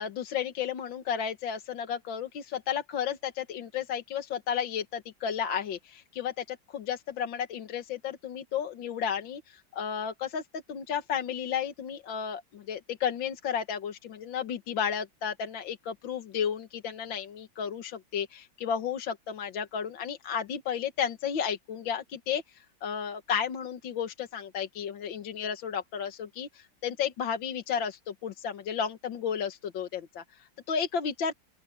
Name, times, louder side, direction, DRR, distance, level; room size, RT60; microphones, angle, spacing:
voice 1, 0.0-31.3, left 8 dB, 70° left, 2.0 m, -33 dB
open air
omnidirectional pair, 2.2 m